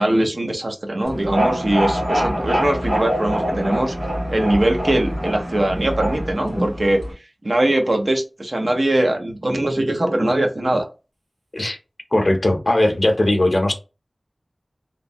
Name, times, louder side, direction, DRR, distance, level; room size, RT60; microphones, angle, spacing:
voice 1, 0.0-3.9 4.3-7.0 7.4-10.9, right 1 dB, 60° right, 0.7 m, -21 dB
sound 1, 1.0-7.1, equal, 75° right, 1.6 m, -24 dB
voice 2, 12.1-13.7, left 1 dB, 45° left, 0.6 m, -18 dB
3.1 x 2.1 x 2.6 m
wide cardioid pair, 55°, 0 cm